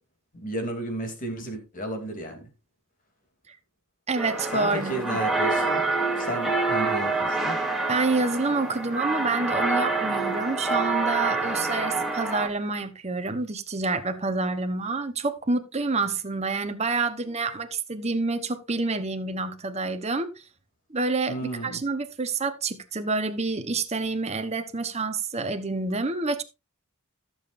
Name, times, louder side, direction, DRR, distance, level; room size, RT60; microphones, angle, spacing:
voice 1, 0.3-2.5 4.5-5.9 6.1-7.6 21.3-21.8, right 1 dB, 40° left, 3.0 m, -33 dB
sound 1, 4.1-12.5, right 3 dB, ahead, 2.4 m, -27 dB
voice 2, 4.1-5.2 7.9-20.3 20.9-26.4, right 3 dB, 30° right, 1.0 m, -28 dB
16.0 x 7.3 x 2.6 m
head